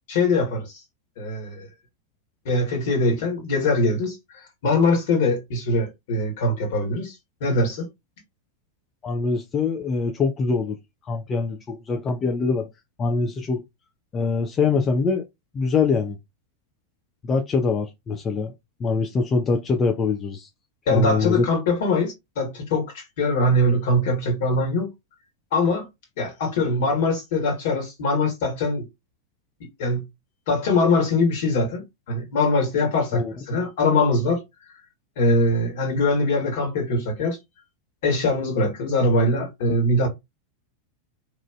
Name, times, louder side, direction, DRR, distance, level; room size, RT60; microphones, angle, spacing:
voice 1, 0.1-0.8 1.2-1.7 2.4-7.9 20.9-24.9 25.5-25.9 26.2-28.8 29.8-30.1 30.5-34.4 35.2-37.4 38.0-40.1, left 2 dB, 50° left, 1.4 m, -22 dB
voice 2, 9.0-10.8 11.1-12.7 13.0-13.6 14.1-15.2 15.5-16.2 17.2-18.5 18.8-20.5 20.9-21.4 33.1-33.3, left 4 dB, 25° left, 0.4 m, -23 dB
3.0 x 2.5 x 2.4 m
figure-of-eight pair, 90°, 0 cm